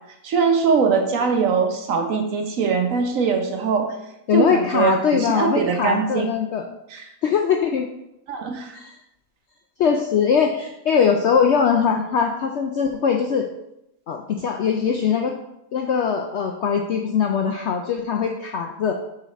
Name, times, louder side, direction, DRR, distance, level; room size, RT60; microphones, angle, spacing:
voice 1, 0.2-3.9 4.3-6.3 6.9-7.1 8.3-8.7, right 5 dB, 60° right, 4 dB, 1.1 m, -21 dB
voice 2, 4.3-6.6 7.2-7.9 8.7-9.0 9.8-13.5 14.1-15.3 15.7-18.9, left 6 dB, 70° left, 3 dB, 0.6 m, -21 dB
7.2 x 3.9 x 4.1 m, 0.85 s
omnidirectional pair, 1.7 m